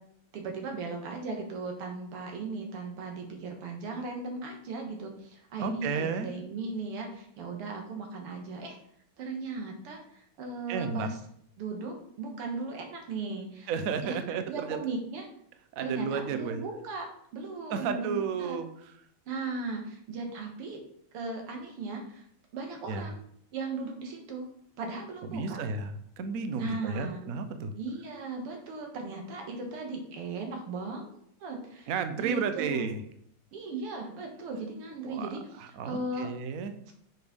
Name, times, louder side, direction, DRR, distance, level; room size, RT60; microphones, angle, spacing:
voice 1, 0.3-8.8 9.2-11.2 11.6-13.7 14.0-14.2 14.5-15.3 15.8-18.6 19.3-20.8 21.1-22.2 22.5-23.2 23.5-24.5 24.8-25.6 26.6-27.2 27.8-31.1 31.4-31.9 32.2-32.9 33.5-35.4 35.8-36.3 36.9-37.0, right 3 dB, 90° right, 2 dB, 2.3 m, -37 dB
voice 2, 5.6-6.3 10.7-11.1 13.7-14.8 15.7-16.6 17.7-18.7 22.9-23.1 25.3-27.7 31.9-33.0 35.1-35.3 35.6-36.7, right 5 dB, 65° right, 9 dB, 0.8 m, -32 dB
6.3 x 5.2 x 5.1 m, 0.68 s
omnidirectional pair, 2.4 m